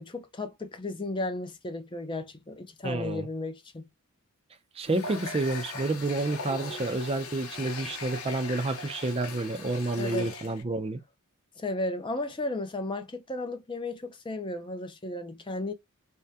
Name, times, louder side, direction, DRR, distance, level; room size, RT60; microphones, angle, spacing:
voice 1, 0.0-3.9 10.0-10.3 11.6-15.7, left 2 dB, 20° left, 0.5 m, -34 dB
voice 2, 2.8-3.3 4.8-11.0, right 2 dB, 25° right, 0.5 m, -29 dB
Water tap faucet, 4.8-10.6, left 3 dB, 80° left, 0.8 m, -40 dB
3.4 x 2.1 x 2.7 m
head